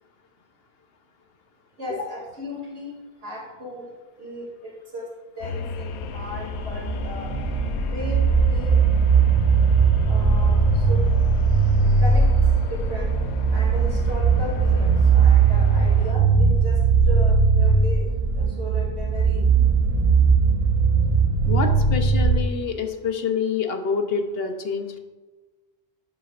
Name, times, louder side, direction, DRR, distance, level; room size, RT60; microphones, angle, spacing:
voice 1, 1.8-2.9 3.2-3.9 4.2-5.1 5.4-7.3 7.9-8.8 10.1-11.4 12.0-12.3 12.6-13.2 13.5-19.4, equal, 90° right, -4 dB, 3.1 m, -36 dB
sound 1, 5.4-16.1, left 6 dB, 80° left, 0.9 m, -35 dB
sound 2, 6.0-22.4, right 5 dB, 40° right, 0.6 m, -19 dB
voice 2, 21.5-25.0, left 5 dB, 65° left, 6 dB, 1.0 m, -27 dB
11.0 x 7.4 x 2.5 m, 1.2 s
omnidirectional pair, 1.1 m